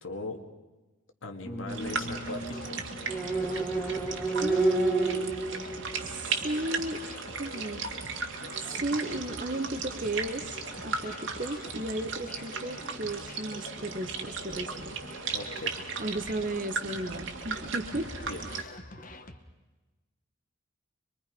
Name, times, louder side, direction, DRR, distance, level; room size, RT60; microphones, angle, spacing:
voice 1, 0.0-0.4 1.2-2.8 15.3-15.8 18.2-18.7, left 2 dB, 75° left, 5 dB, 2.2 m, -39 dB
sound 1, 1.4-6.2, right 3 dB, 5° left, 2.0 m, -31 dB
sound 2, 1.7-18.6, right 5 dB, 75° right, 1.9 m, -37 dB
sound 3, 1.9-19.4, left 1 dB, 40° left, 1.2 m, -47 dB
voice 2, 4.4-5.3 6.0-7.0 7.4-7.9 8.8-15.0 16.0-18.1, right 1 dB, 40° right, 9 dB, 1.3 m, -33 dB
25.0 x 22.5 x 5.4 m, 1.1 s
head